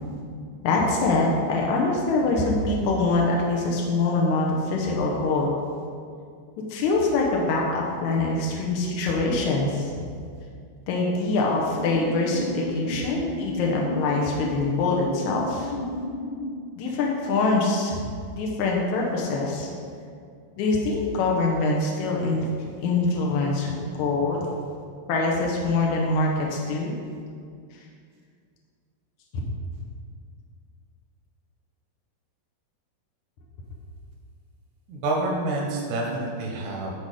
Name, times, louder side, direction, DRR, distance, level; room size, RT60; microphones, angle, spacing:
voice 1, 0.6-5.5 6.7-9.9 10.9-15.7 16.8-18.0 18.4-19.7 20.6-22.5 22.8-24.5 25.1-26.9 29.3-29.4, left 3 dB, 85° left, -2 dB, 1.7 m, -24 dB
sound 1, 11.5-16.5, left 1 dB, 60° left, 2.3 m, -33 dB
voice 2, 34.9-36.9, right 2 dB, 85° right, -1 dB, 3.0 m, -28 dB
12.0 x 4.2 x 4.9 m, 2.2 s
omnidirectional pair, 4.8 m